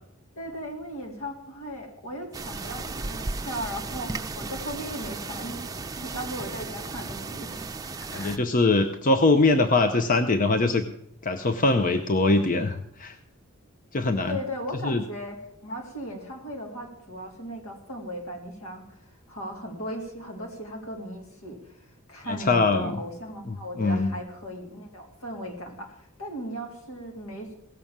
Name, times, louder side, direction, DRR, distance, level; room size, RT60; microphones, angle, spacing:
voice 1, 0.3-5.7 5.9-7.6 8.0-8.4 14.3-19.0 19.3-27.5, equal, 75° left, 1 dB, 3.3 m, -37 dB
sound 1, 2.3-8.4, right 3 dB, 15° right, 0.6 m, -35 dB
voice 2, 8.1-10.8 11.2-13.2 13.9-14.4 14.8-15.0 22.3-23.0 23.8-24.1, left 3 dB, 40° left, 8 dB, 0.7 m, -22 dB
17.0 x 6.9 x 7.3 m, 0.77 s
head